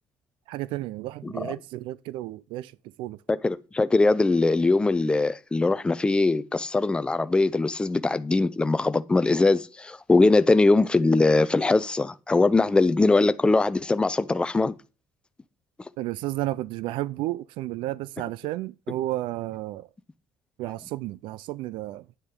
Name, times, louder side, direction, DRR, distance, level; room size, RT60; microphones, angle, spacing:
voice 1, 0.5-2.7 3.0-3.2 16.0-19.9 20.6-22.1, right 16 dB, 85° right, 0.4 m, -32 dB
voice 2, 1.2-1.5 3.3-14.8, left 3 dB, 10° left, 0.5 m, -21 dB
9.8 x 9.5 x 3.7 m
cardioid pair, 155°, 8 cm